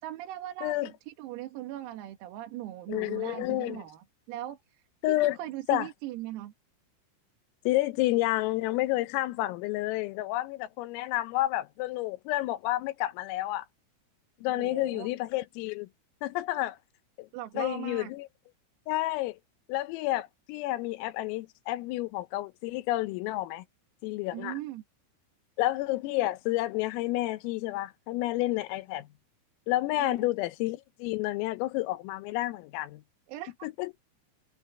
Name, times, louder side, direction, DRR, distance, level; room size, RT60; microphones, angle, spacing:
voice 1, 0.0-6.5 14.6-15.1 17.3-18.1 24.3-24.8 30.0-30.1 33.3-33.7, right 14 dB, 90° right, 4.6 m, -39 dB
voice 2, 2.9-3.8 5.0-5.4 5.7-5.9 7.7-13.7 14.4-15.9 16.2-16.8 17.2-17.3 17.6-18.3 18.9-19.4 19.7-23.7 24.0-24.6 25.6-29.1 29.7-33.0 33.6-33.9, left 17 dB, 80° left, 3.6 m, -30 dB
omnidirectional pair, 6.0 m